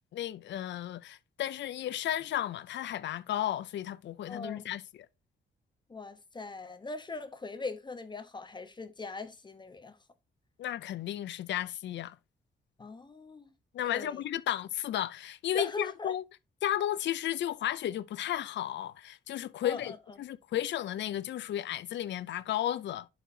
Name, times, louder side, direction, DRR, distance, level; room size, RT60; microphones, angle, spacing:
voice 1, 0.1-4.8 10.6-12.2 13.7-16.2 16.6-23.1, left 12 dB, 65° left, 0.5 m, -33 dB
voice 2, 4.3-4.6 5.9-10.0 12.8-13.4 13.9-14.2 15.5-16.1 19.6-20.0, left 3 dB, 25° left, 0.9 m, -40 dB
11.0 x 4.3 x 2.7 m
wide cardioid pair, 135°, 20 cm